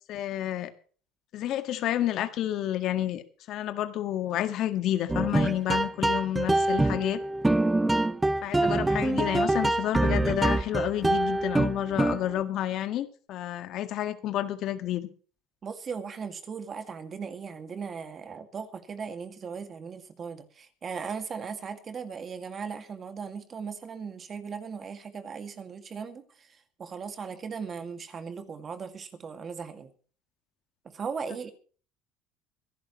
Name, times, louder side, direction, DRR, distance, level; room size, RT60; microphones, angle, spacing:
voice 1, 0.1-0.7 1.3-7.2 8.4-15.1, left 12 dB, 55° left, 9 dB, 1.8 m, -30 dB
sound 1, 5.1-12.4, right 2 dB, 10° right, 0.8 m, -25 dB
voice 2, 15.6-29.9 30.8-31.5, right 6 dB, 30° right, 8 dB, 2.1 m, -38 dB
24.5 x 11.5 x 3.1 m, 0.41 s
supercardioid pair, 115°, 0 cm